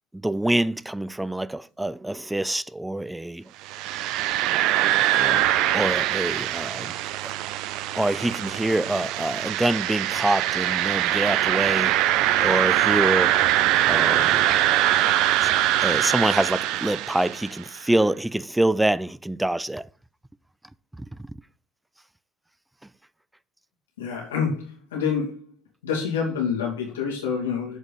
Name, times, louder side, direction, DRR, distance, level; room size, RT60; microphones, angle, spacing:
voice 1, 0.1-3.4 5.1-5.4 5.7-6.9 7.9-12.0 12.4-13.3 13.9-14.4 15.4-15.5 15.8-19.8, right 1 dB, 10° right, 0.3 m, -25 dB
sound 1, 3.7-17.6, right 13 dB, 65° right, 0.5 m, -23 dB
voice 2, 24.0-25.5 25.8-27.8, left 6 dB, 85° left, 2.5 m, -27 dB
7.5 x 4.9 x 5.0 m
hypercardioid pair, 60°, 0 cm